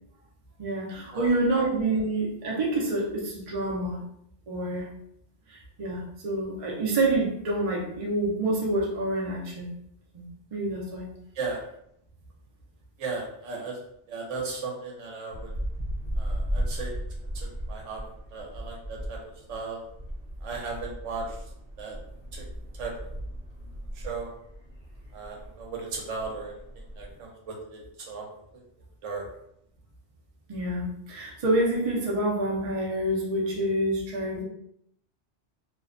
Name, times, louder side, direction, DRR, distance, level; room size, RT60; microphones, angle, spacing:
voice 1, 0.6-4.0 4.5-4.9 5.5-9.7 10.1-10.2 10.5-11.1 30.5-34.4, right 1 dB, 45° right, -2 dB, 0.4 m, -27 dB
voice 2, 13.0-13.8 14.1-15.5 16.2-17.0 17.3-18.0 18.3-19.2 19.5-19.8 20.4-21.3 21.8-22.0 22.3-22.4 22.8-23.1 24.0-24.3 25.1-26.5 27.0-27.8 28.1-28.3 29.0-29.3, right 4 dB, 80° right, -1 dB, 1.0 m, -36 dB
sound 1, 15.3-27.2, equal, 40° left, 0.7 m, -36 dB
2.4 x 2.1 x 2.4 m, 0.74 s
omnidirectional pair, 1.3 m